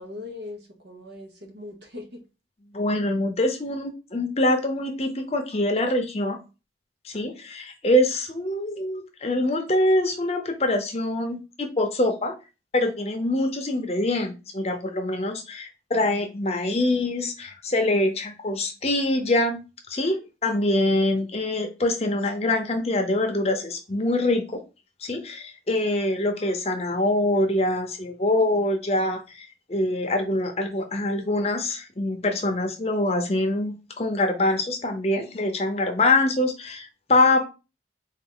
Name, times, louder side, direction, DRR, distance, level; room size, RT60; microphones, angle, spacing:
voice 1, 0.0-2.2, left 2 dB, 70° right, 1.1 m, -40 dB
voice 2, 2.7-6.4 7.0-12.3 12.7-19.6 19.9-24.6 25.0-37.5, left 1 dB, 35° left, 0.7 m, -24 dB
4.0 x 2.6 x 3.7 m
head